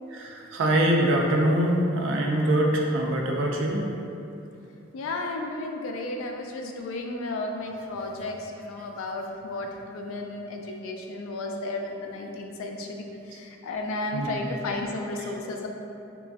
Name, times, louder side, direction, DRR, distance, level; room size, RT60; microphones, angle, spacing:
voice 1, 0.1-3.9 14.1-14.6, right 1 dB, 65° right, 0 dB, 0.3 m, -24 dB
voice 2, 4.9-9.7 9.9-15.7, left 2 dB, 85° left, 3 dB, 0.3 m, -33 dB
2.9 x 2.4 x 2.3 m, 2.7 s
head